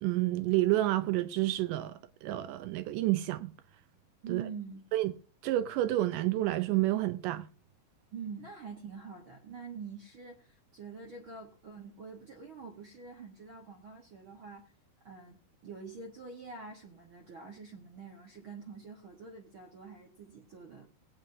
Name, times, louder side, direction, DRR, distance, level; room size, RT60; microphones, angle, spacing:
voice 1, 0.0-3.5 4.3-4.4 4.9-5.1 5.4-7.5, right 15 dB, 80° right, 1.9 m, -29 dB
voice 2, 4.2-4.8 8.1-14.7 15.0-20.9, right 5 dB, 60° right, 1.3 m, -46 dB
20.5 x 9.0 x 2.7 m
omnidirectional pair, 4.4 m